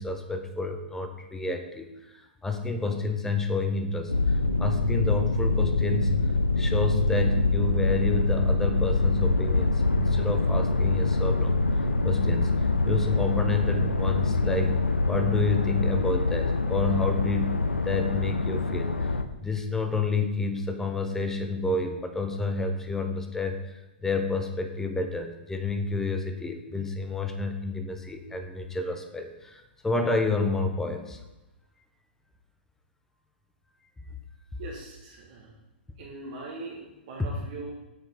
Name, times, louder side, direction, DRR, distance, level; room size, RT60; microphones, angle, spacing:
voice 1, 0.0-1.9 2.4-6.2 6.6-11.5 12.0-12.5 12.8-19.1 19.4-31.2, left 3 dB, 5° left, 6 dB, 0.7 m, -29 dB
sound 1, 4.1-19.2, left 3 dB, 85° left, 0.4 m, -25 dB
voice 2, 34.6-35.5 36.0-37.7, right 3 dB, 45° right, -3 dB, 1.3 m, -41 dB
7.0 x 5.5 x 3.5 m, 1.0 s
figure-of-eight pair, 110°, 6 cm